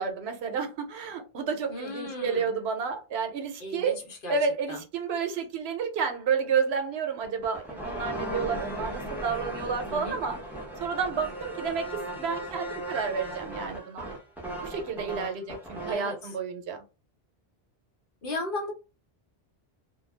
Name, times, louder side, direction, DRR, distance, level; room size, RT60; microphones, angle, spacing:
voice 1, 0.0-4.0 4.3-10.4 10.8-14.1 14.6-16.8, right 5 dB, 85° right, 0.9 m, -30 dB
voice 2, 1.7-2.5 3.6-4.4 4.7-4.8 9.9-10.2 15.9-16.4 18.2-18.7, left 2 dB, 60° left, 1.0 m, -36 dB
sound 1, 7.2-16.1, right 1 dB, ahead, 0.7 m, -37 dB
2.3 x 2.2 x 3.1 m
omnidirectional pair, 1.0 m